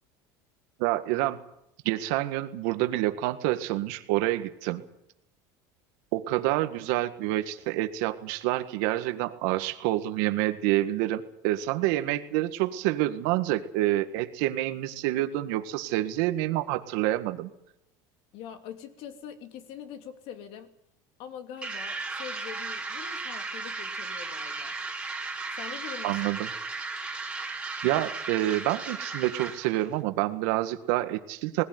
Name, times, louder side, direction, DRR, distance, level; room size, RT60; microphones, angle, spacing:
voice 1, 0.8-1.4 1.9-4.8 6.1-17.5 26.0-26.5 27.8-31.6, right 15 dB, 75° right, 9 dB, 1.8 m, -27 dB
voice 2, 18.3-20.7 21.2-24.8 25.6-26.2, left 9 dB, 65° left, 7 dB, 2.8 m, -43 dB
sound 1, 21.6-29.9, right 3 dB, 10° right, 2.7 m, -35 dB
20.0 x 16.5 x 9.5 m, 0.81 s
supercardioid pair, 125°, 10 cm